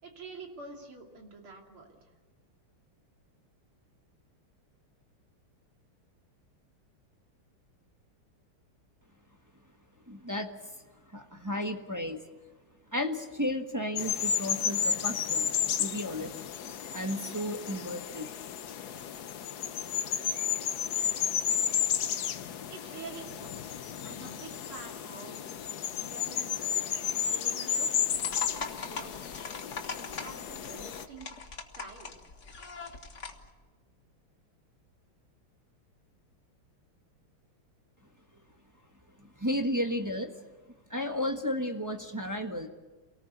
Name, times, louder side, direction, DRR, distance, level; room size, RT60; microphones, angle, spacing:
voice 1, 0.0-2.1 22.7-25.6 26.0-26.8 27.3-28.1 28.6-29.3 30.0-31.4 31.8-32.1, right 3 dB, 75° right, 1 dB, 3.8 m, -47 dB
voice 2, 10.1-10.5 11.1-12.2 12.9-15.5 15.8-16.4 16.9-18.3 39.2-40.3 40.9-42.7, left 1 dB, 10° right, 4 dB, 1.0 m, -33 dB
sound 1, 14.0-31.0, left 8 dB, 60° left, 1.2 m, -32 dB
sound 2, 28.1-33.5, left 4 dB, 35° left, 1.6 m, -41 dB
28.0 x 18.5 x 8.2 m, 1.3 s
omnidirectional pair, 2.4 m